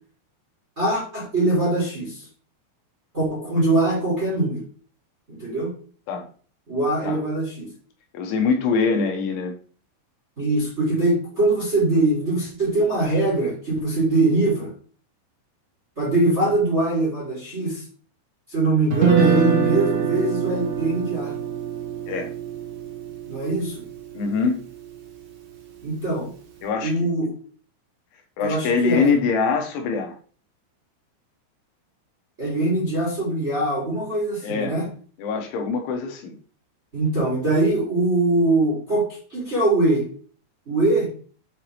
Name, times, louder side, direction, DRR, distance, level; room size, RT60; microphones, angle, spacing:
voice 1, 0.7-2.2 3.1-4.6 5.3-5.7 6.7-7.7 10.4-14.7 16.0-17.8 18.5-21.3 23.3-23.8 25.8-26.3 26.8-27.3 28.4-29.1 32.4-34.9 36.9-40.1 40.6-41.1, right 2 dB, 25° right, -5 dB, 1.4 m, -22 dB
voice 2, 8.1-9.6 22.1-22.3 24.1-24.6 26.6-26.9 28.4-30.1 34.4-34.8 35.2-36.4, left 5 dB, 75° left, 4 dB, 3.2 m, -23 dB
Guitar, 18.9-25.0, right 7 dB, 70° right, 2.0 m, -24 dB
7.9 x 4.5 x 3.3 m, 0.41 s
omnidirectional pair, 5.8 m